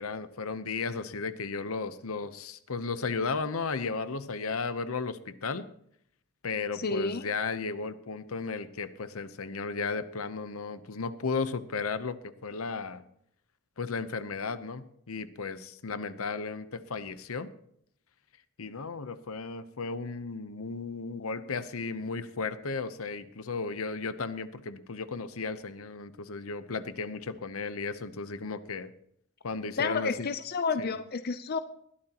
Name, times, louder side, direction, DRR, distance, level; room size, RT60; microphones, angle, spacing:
voice 1, 0.0-5.7 6.4-13.0 13.8-17.5 18.6-28.9 29.4-30.3 30.8-30.9, left 4 dB, 75° left, 13 dB, 0.8 m, -35 dB
voice 2, 6.7-7.2 29.8-31.6, left 4 dB, 45° left, 10 dB, 0.6 m, -30 dB
20.5 x 13.0 x 3.0 m, 0.69 s
head